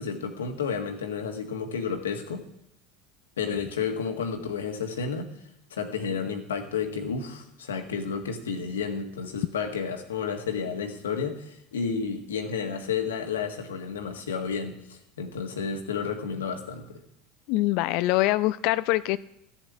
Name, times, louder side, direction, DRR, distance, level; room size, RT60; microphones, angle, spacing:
voice 1, 0.0-2.4 3.4-5.3 5.7-17.0, left 6 dB, 80° left, 5 dB, 1.7 m, -31 dB
voice 2, 17.5-19.2, left 17 dB, 60° left, 16 dB, 0.4 m, -24 dB
14.5 x 7.2 x 8.3 m, 0.77 s
figure-of-eight pair, 75°, 0 cm